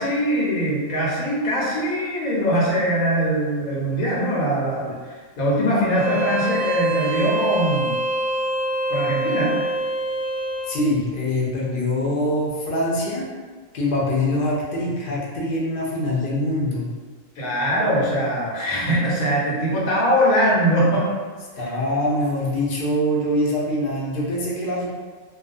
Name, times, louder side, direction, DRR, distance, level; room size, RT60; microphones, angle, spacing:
voice 1, 0.0-8.0 8.9-9.6 17.4-21.1 21.6-21.7, equal, 90° left, -5 dB, 1.2 m, -22 dB
Bowed string instrument, 5.9-10.7, right 1 dB, 65° right, 0.8 m, -25 dB
voice 2, 10.7-13.3 13.7-16.9 21.6-24.9, left 1 dB, 55° left, -5 dB, 0.7 m, -24 dB
2.4 x 2.3 x 2.4 m, 1.4 s
omnidirectional pair, 1.4 m